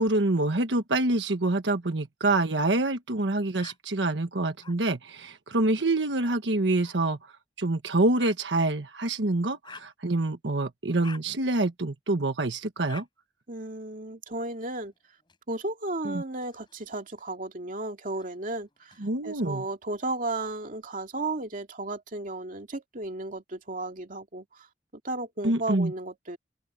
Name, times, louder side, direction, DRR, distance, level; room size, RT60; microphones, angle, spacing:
voice 1, 0.0-7.2 7.6-13.0 16.0-16.2 19.0-19.6 25.4-25.9, right 2 dB, 90° right, 1.4 m, -26 dB
sound 1, 3.6-3.8 4.6-4.8 6.8-7.0 8.2-8.4 9.6-9.9 11.0-11.2 12.9-13.1 14.6-15.4 16.3-17.2 18.1-19.0, left 4 dB, 25° left, 6.0 m, -48 dB
voice 2, 13.5-14.9 15.5-24.7 25.0-26.4, right 2 dB, 50° right, 2.4 m, -34 dB
head